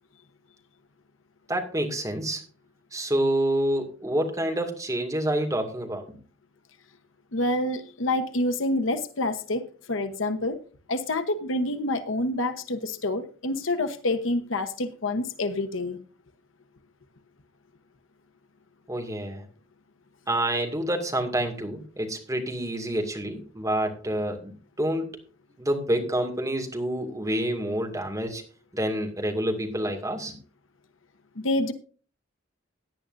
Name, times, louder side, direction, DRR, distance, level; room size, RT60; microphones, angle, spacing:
voice 1, 1.5-2.4 2.9-6.1 18.9-19.4 20.3-24.5 24.8-25.1 25.6-28.4 28.7-30.4, right 1 dB, 15° right, 2.2 m, -28 dB
voice 2, 7.3-10.6 10.9-16.0 31.4-31.7, left 1 dB, 85° left, 1.1 m, -27 dB
17.0 x 10.0 x 2.6 m
head